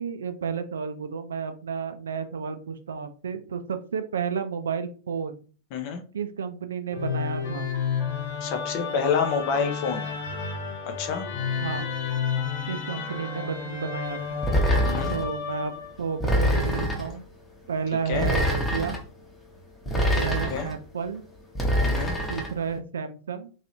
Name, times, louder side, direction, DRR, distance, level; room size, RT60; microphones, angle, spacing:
voice 1, 0.0-5.4 6.1-7.7 11.6-11.9 12.7-14.4 15.1-15.7 16.0-17.2 17.7-19.0 19.9-21.2 22.3-23.5, right 6 dB, 65° right, 9 dB, 0.4 m, -31 dB
voice 2, 5.7-6.0 8.4-10.1 10.8-11.3 14.8-15.2 18.1-18.3 20.5-20.7 21.8-22.2, left 6 dB, 45° left, 5 dB, 0.6 m, -28 dB
Musical instrument, 6.9-16.1, left 6 dB, 65° left, 1.2 m, -31 dB
sound 1, 14.4-15.3 16.2-17.1 18.1-19.0 19.9-20.7 21.6-22.5, equal, 10° left, 0.9 m, -24 dB
3.1 x 2.8 x 2.7 m, 0.38 s
figure-of-eight pair, 90°, 0 cm